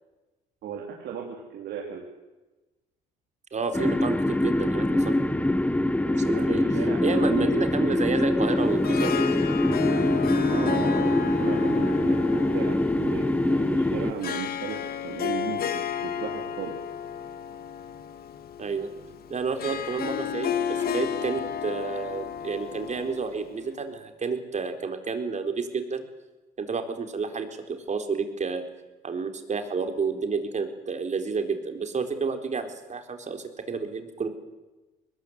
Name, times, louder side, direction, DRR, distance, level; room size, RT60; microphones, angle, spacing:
voice 1, 0.6-2.0 6.1-7.5 10.5-16.8, right 7 dB, 70° right, 0 dB, 4.1 m, -36 dB
voice 2, 3.5-5.2 6.3-6.6 7.0-9.3 18.6-18.9 19.3-26.0 26.6-28.6 29.0-34.3, right 5 dB, 40° right, 6 dB, 4.2 m, -30 dB
sound 1, 3.7-14.1, left 1 dB, 10° left, 1.3 m, -24 dB
Harp, 8.6-23.8, left 9 dB, 60° left, 2.2 m, -33 dB
23.0 x 20.5 x 8.2 m, 1.1 s
supercardioid pair, 65°, 18 cm